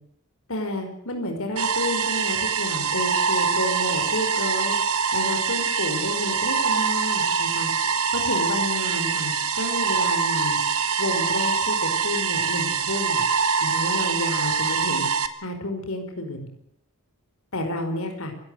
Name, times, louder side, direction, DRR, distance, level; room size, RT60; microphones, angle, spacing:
voice 1, 0.5-4.7 5.1-7.7 8.1-10.6 11.0-13.2 13.6-15.1 15.4-16.5 17.5-18.3, left 1 dB, 65° left, 5 dB, 5.0 m, -30 dB
sound 1, 1.6-15.3, right 5 dB, 80° right, 2.3 m, -24 dB
28.0 x 17.0 x 6.5 m, 0.74 s
head